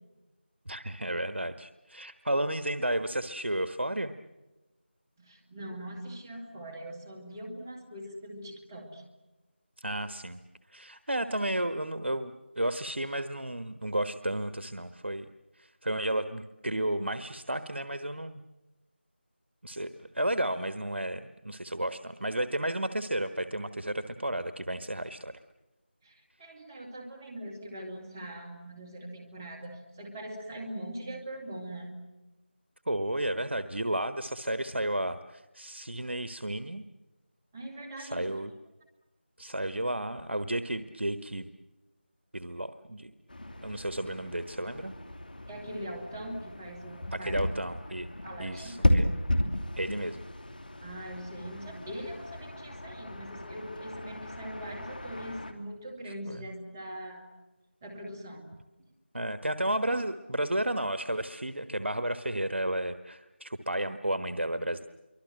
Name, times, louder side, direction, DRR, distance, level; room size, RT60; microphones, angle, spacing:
voice 1, 0.7-4.1 9.8-10.4 10.7-15.3 15.5-18.4 19.6-25.3 32.9-36.8 38.0-38.5 39.4-41.5 42.3-43.1 43.6-44.9 47.1-48.1 48.4-49.1 49.8-50.2 56.3-56.4 59.1-64.8, right 1 dB, 75° right, 10 dB, 1.3 m, -32 dB
voice 2, 5.2-9.0 26.0-31.9 37.5-38.3 45.5-47.4 48.2-48.9 50.8-57.3 57.8-58.5, right 1 dB, 10° right, 1 dB, 2.2 m, -42 dB
sound 1, 43.3-55.5, left 1 dB, 50° left, 2.8 m, -34 dB
27.0 x 24.5 x 7.7 m, 1.1 s
figure-of-eight pair, 170°, 6 cm